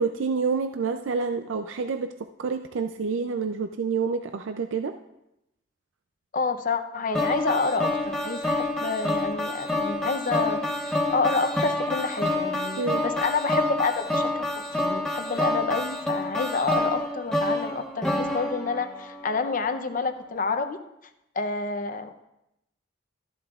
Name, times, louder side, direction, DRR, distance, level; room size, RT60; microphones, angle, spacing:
voice 1, 0.0-4.9 12.8-13.0, right 5 dB, 85° right, 7 dB, 0.4 m, -28 dB
voice 2, 6.3-10.6 11.1-20.8 21.4-22.2, left 4 dB, 45° left, 9 dB, 0.6 m, -28 dB
sound 1, 7.1-19.3, left 1 dB, 5° left, 1.2 m, -28 dB
13.5 x 11.0 x 2.4 m, 0.87 s
head